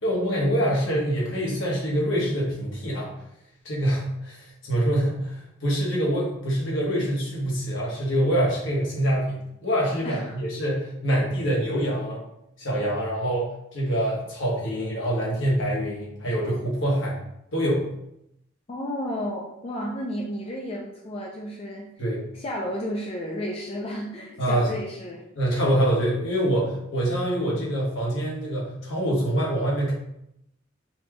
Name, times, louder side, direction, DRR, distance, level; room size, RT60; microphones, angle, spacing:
voice 1, 0.0-3.1 3.6-12.2 12.6-17.2 17.5-17.9 22.0-22.2 24.4-24.7 25.3-29.9, equal, 65° left, -4 dB, 1.1 m, -25 dB
voice 2, 10.0-10.4 18.7-21.9 22.3-25.2, equal, 30° left, -2 dB, 0.4 m, -32 dB
4.2 x 2.3 x 2.9 m, 0.80 s
head